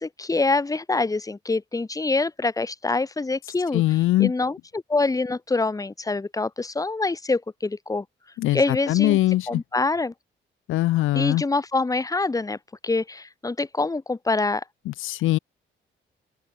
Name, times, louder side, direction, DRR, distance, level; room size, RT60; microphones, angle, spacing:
voice 1, 0.0-3.8 4.2-8.0 8.5-9.2 9.5-10.1 11.1-12.6 12.8-14.6, left 3 dB, 15° left, 1.5 m, -25 dB
voice 2, 3.7-4.3 8.4-9.6 10.7-11.4 14.9-15.4, left 16 dB, 85° left, 1.1 m, -22 dB
open air
cardioid pair, 90°, 20 cm